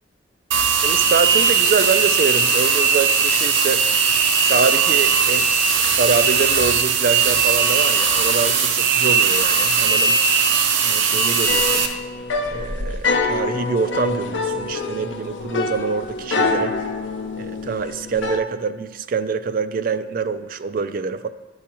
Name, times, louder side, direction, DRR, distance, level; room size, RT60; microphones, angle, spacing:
sound 1, 0.5-11.9, right 6 dB, 85° right, 0.7 m, -18 dB
voice 1, 0.8-3.8 4.5-5.5 5.8-10.2 10.8-11.9 12.5-16.7 17.3-21.3, right 5 dB, 50° right, 12 dB, 0.3 m, -25 dB
sound 2, 11.5-18.4, left 3 dB, 75° left, 0.6 m, -25 dB
11.0 x 4.8 x 3.0 m, 1.2 s
head